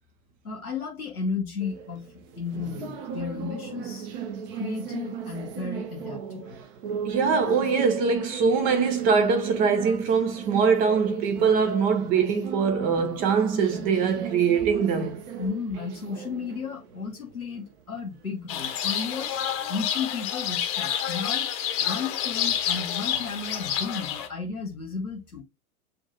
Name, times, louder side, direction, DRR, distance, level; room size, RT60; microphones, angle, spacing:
voice 1, 0.4-2.1 2.4-4.1 4.5-6.6 15.4-19.4 19.7-21.5 21.8-25.4, left 5 dB, 85° left, 0.9 m, -33 dB
sound 1, 1.6-20.0, right 7 dB, 40° right, 0.9 m, -37 dB
voice 2, 7.1-15.2, right 5 dB, 20° right, 0.5 m, -23 dB
sound 2, 18.5-24.3, left 9 dB, 30° left, 0.9 m, -28 dB
7.7 x 2.6 x 2.6 m
figure-of-eight pair, 100°, 43 cm